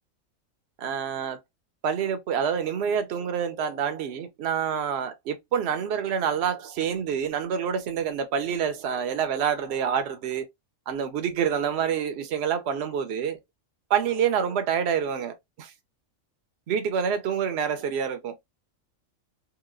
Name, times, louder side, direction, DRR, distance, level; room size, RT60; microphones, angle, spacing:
voice 1, 0.8-1.4 1.8-10.5 10.9-13.4 13.9-15.7 16.7-18.4, right 7 dB, 60° right, 0.9 m, -27 dB
2.9 x 2.7 x 2.5 m
omnidirectional pair, 1.4 m